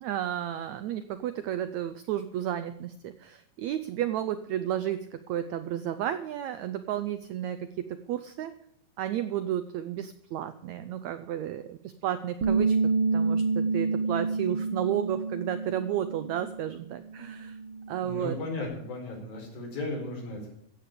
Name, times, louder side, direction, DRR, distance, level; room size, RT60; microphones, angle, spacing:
voice 1, 0.0-8.5 9.0-12.8 13.1-17.6 17.9-18.4, right 11 dB, 85° right, 11 dB, 1.6 m, -32 dB
Bass guitar, 12.4-16.7 17.0-18.6, right 4 dB, 55° right, 1.6 m, -29 dB
voice 2, 18.0-20.5, left 2 dB, 85° left, 0 dB, 6.4 m, -35 dB
15.0 x 8.5 x 6.7 m, 0.74 s
omnidirectional pair, 4.1 m